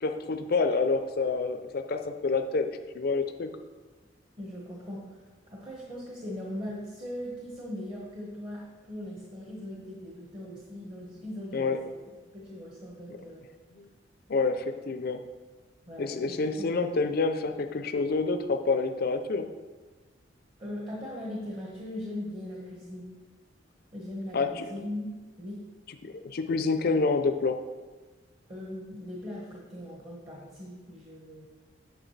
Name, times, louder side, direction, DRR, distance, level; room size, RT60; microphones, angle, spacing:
voice 1, 0.0-2.7 2.9-3.5 11.5-11.8 13.8-13.9 14.3-15.2 16.0-19.5 24.3-24.7 26.0-27.6, left 4 dB, 55° left, 7 dB, 0.5 m, -28 dB
voice 2, 4.4-11.9 12.3-13.4 15.9-16.7 20.6-23.1 23.9-25.1 25.4-25.6 28.5-31.5, left 1 dB, 30° right, -3 dB, 1.3 m, -39 dB
8.8 x 7.0 x 3.2 m, 1.3 s
head